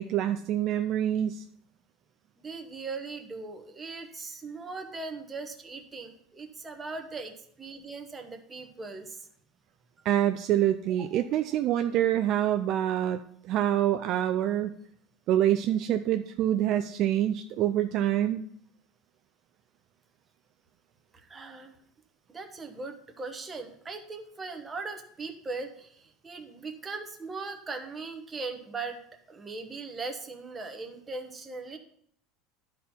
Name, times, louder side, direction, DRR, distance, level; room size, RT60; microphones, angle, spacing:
voice 1, 0.0-1.4 10.1-13.2 13.4-14.7 15.3-18.4, right 11 dB, 45° right, 8 dB, 0.4 m, -26 dB
voice 2, 2.4-9.3 10.0-10.1 11.0-11.2 21.1-21.8 22.3-29.0 29.3-31.8, right 3 dB, 15° right, 5 dB, 1.0 m, -39 dB
11.5 x 4.4 x 5.5 m, 0.64 s
supercardioid pair, 150°, 0 cm